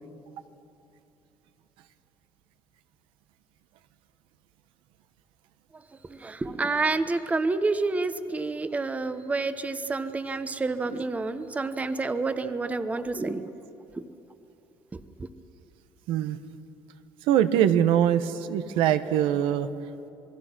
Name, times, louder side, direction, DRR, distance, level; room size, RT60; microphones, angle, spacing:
voice 1, 6.1-13.5 14.0-14.1, right 3 dB, 15° right, 11 dB, 0.9 m, -28 dB
voice 2, 16.1-16.4 17.3-19.7, right 10 dB, 80° right, 11 dB, 1.0 m, -23 dB
28.0 x 20.5 x 6.1 m, 2.8 s
cardioid pair, 130°, 9 cm